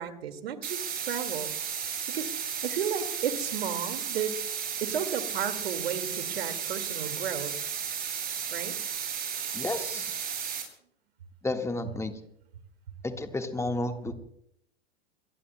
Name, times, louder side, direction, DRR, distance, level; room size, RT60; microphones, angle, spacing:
voice 1, 0.0-1.5 2.1-4.4 4.8-7.7 8.5-8.8, right 8 dB, 70° right, 9 dB, 2.1 m, -33 dB
sound 1, 0.6-10.6, right 7 dB, 30° right, 8.0 m, -34 dB
voice 2, 9.5-10.1 11.4-12.2 13.0-14.1, left 2 dB, 10° left, 6 dB, 1.5 m, -32 dB
29.0 x 22.5 x 2.2 m, 0.73 s
figure-of-eight pair, 95°, 31 cm